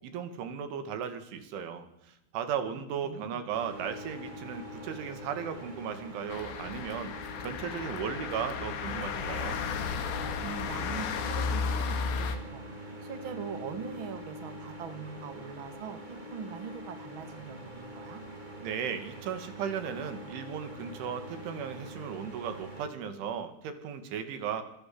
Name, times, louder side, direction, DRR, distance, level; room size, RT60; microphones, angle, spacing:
voice 1, 0.0-9.6 18.6-24.6, right 7 dB, 70° right, 9 dB, 4.7 m, -36 dB
voice 2, 2.7-3.5 10.4-18.2, right 6 dB, 50° right, 9 dB, 1.4 m, -42 dB
sound 1, 3.5-22.9, equal, 10° right, 2.6 m, -44 dB
sound 2, 6.3-12.4, left 5 dB, 75° left, 4.7 m, -34 dB
28.0 x 21.0 x 7.9 m, 0.82 s
omnidirectional pair, 5.8 m